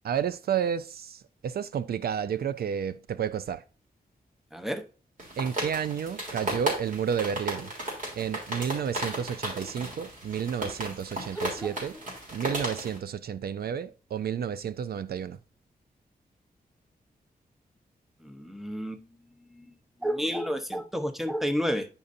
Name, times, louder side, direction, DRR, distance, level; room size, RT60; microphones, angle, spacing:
voice 1, 0.0-3.6 5.4-7.7 8.2-12.0 12.3-15.4, right 8 dB, 75° right, 0.4 m, -31 dB
voice 2, 4.5-4.8 11.3-11.8 18.2-19.0 19.5-19.7 20.0-21.9, equal, ahead, 0.9 m, -30 dB
sound 1, 5.2-13.0, right 1 dB, 55° right, 3.4 m, -35 dB
9.6 x 5.3 x 2.6 m
wide cardioid pair, 90°, 16 cm